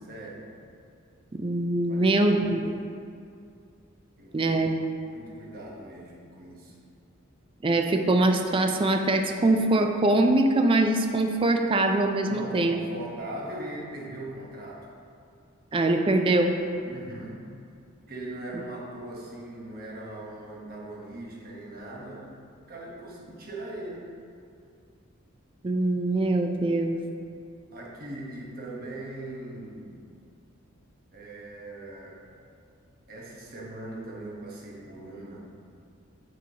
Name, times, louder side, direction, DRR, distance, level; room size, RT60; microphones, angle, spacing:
voice 1, 0.0-0.5 1.9-2.2 2.7-2.8 4.2-4.5 5.0-6.8 12.3-14.9 16.9-17.5 18.1-22.4 22.7-24.1 27.7-30.0 31.1-32.2 33.1-35.4, right 1 dB, 45° right, -3 dB, 1.1 m, -40 dB
voice 2, 1.3-2.6 4.3-4.7 7.6-12.8 15.7-16.5 25.6-27.0, right 2 dB, 25° right, 5 dB, 0.4 m, -23 dB
7.3 x 6.1 x 2.8 m, 2.4 s
head